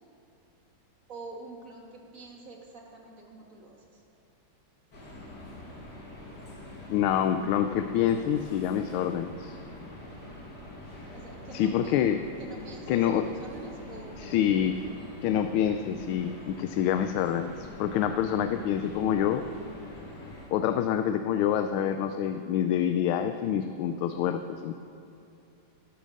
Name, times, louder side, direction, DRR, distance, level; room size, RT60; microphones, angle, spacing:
voice 1, 1.1-4.0 11.1-11.9 12.4-14.5, right 3 dB, 40° right, -1 dB, 2.2 m, -46 dB
sound 1, 4.9-20.5, left 1 dB, 50° left, 2.9 m, -45 dB
voice 2, 6.9-9.6 11.5-12.2 12.9-13.3 14.2-14.8 15.2-19.5 20.5-24.8, left 9 dB, 80° left, 8 dB, 1.4 m, -27 dB
12.0 x 12.0 x 6.5 m, 2.7 s
omnidirectional pair, 2.3 m